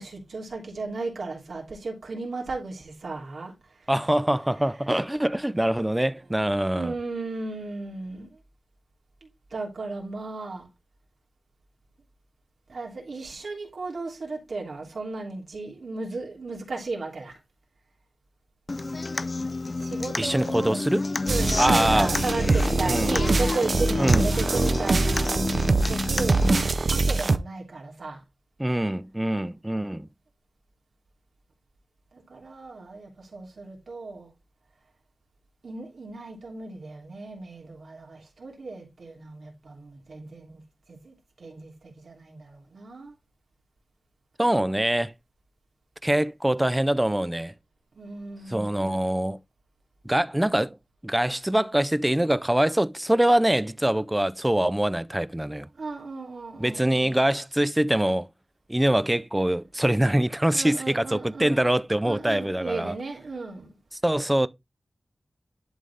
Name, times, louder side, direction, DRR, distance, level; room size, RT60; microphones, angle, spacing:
voice 1, 0.0-3.5 3.8-3.9 6.7-8.3 9.2-10.7 12.7-17.4 19.7-20.8 21.2-25.4 25.9-26.5 26.9-28.2 32.1-34.3 35.6-40.6 40.9-43.2 47.9-49.0 55.7-57.2 60.5-61.7 62.0-63.7, right 3 dB, 85° right, 3.0 m, -35 dB
voice 2, 3.9-6.9 20.2-21.0 21.6-22.1 22.9-23.2 24.0-24.3 28.6-30.1 44.4-45.1 46.0-47.5 48.5-49.4 50.0-50.8 51.0-55.7 56.6-58.3 58.7-62.9 64.0-64.5, right 1 dB, 15° right, 0.5 m, -24 dB
Human voice / Acoustic guitar, 18.7-26.7, left 3 dB, 45° left, 0.4 m, -29 dB
sound 1, 21.3-27.4, right 3 dB, 65° right, 0.6 m, -24 dB
11.0 x 4.0 x 3.4 m
wide cardioid pair, 75°, 0 cm